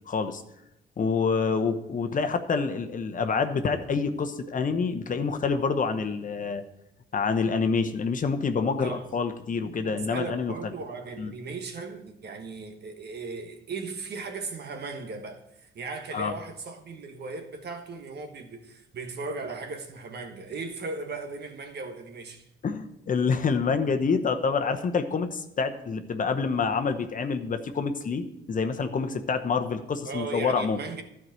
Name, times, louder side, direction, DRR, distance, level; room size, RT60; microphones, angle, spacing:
voice 1, 0.1-0.4 1.0-6.6 7.1-10.7 11.2-11.3 16.1-16.3 22.6-30.8, left 5 dB, 40° left, 0.9 m, -27 dB
voice 2, 9.8-22.5 30.0-31.0, right 3 dB, 55° right, 1.4 m, -37 dB
12.0 x 4.8 x 7.6 m
cardioid pair, 90°, 20 cm